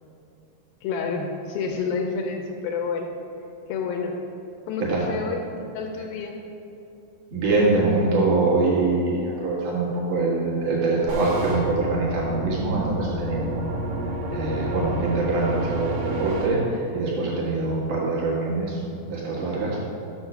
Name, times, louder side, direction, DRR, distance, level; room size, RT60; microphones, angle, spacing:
voice 1, 0.8-3.1 3.7-4.2 4.7-5.5 5.7-6.4, left 5 dB, 85° left, 3 dB, 2.2 m, -29 dB
voice 2, 7.3-13.8 14.3-18.8 19.1-19.9, right 3 dB, 60° right, -5 dB, 2.6 m, -24 dB
sound 1, 11.1-16.5, right 1 dB, 75° right, 3.1 m, -30 dB
7.2 x 6.3 x 6.0 m, 2.8 s
omnidirectional pair, 4.7 m